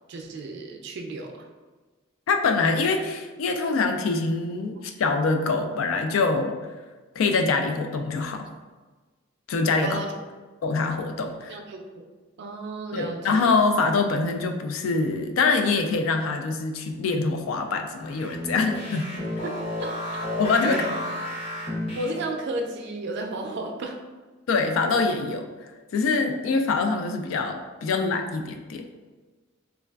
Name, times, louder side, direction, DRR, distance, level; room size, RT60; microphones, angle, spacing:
voice 1, 0.1-1.5 9.8-10.1 11.5-12.0 12.4-13.5 19.4-20.0 20.6-20.9 21.9-24.0 26.3-26.5, right 2 dB, 60° right, 3 dB, 0.4 m, -33 dB
voice 2, 2.3-6.5 7.2-8.5 9.5-10.0 10.6-11.6 12.9-19.1 20.4-20.8 24.5-25.5 25.9-28.9, left 4 dB, 80° left, 5 dB, 0.3 m, -24 dB
sound 1, 18.0-22.5, equal, 30° left, 0.6 m, -32 dB
3.3 x 2.3 x 2.3 m, 1.3 s
head